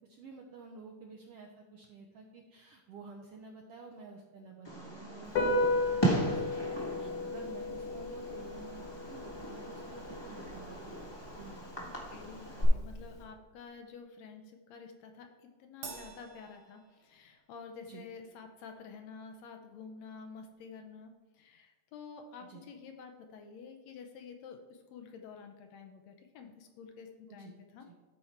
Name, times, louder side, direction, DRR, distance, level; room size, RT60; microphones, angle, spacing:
voice 1, 0.1-11.7 17.8-18.0 22.5-22.6 27.3-27.5 27.9-28.0, right 4 dB, 80° right, 1 dB, 1.3 m, -51 dB
Fireworks, 4.6-12.6, right 1 dB, 30° left, 0.4 m, -37 dB
Piano, 5.3-13.2, left 2 dB, 50° left, 1.7 m, -36 dB
voice 2, 11.8-27.9, left 5 dB, 75° left, 5 dB, 1.7 m, -50 dB
Crash cymbal, 15.8-17.5, right 5 dB, 55° right, 1.5 m, -48 dB
12.0 x 4.5 x 4.3 m, 1.3 s
omnidirectional pair, 3.5 m